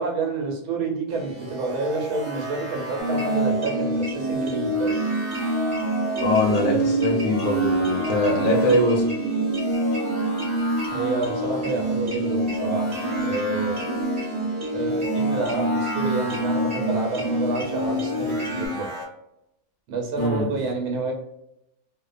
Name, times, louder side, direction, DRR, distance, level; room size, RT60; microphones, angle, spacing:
voice 1, 0.0-5.1 10.9-13.9 14.7-18.9 19.9-21.1, right 3 dB, 80° right, 1 dB, 1.2 m, -29 dB
sound 1, 1.1-19.0, equal, 25° right, 0.7 m, -33 dB
sound 2, 3.0-18.7, right 2 dB, 40° right, 1.0 m, -26 dB
voice 2, 6.2-9.0 20.2-20.5, left 1 dB, 55° left, -1 dB, 0.6 m, -22 dB
2.7 x 2.1 x 2.3 m, 0.81 s
omnidirectional pair, 1.6 m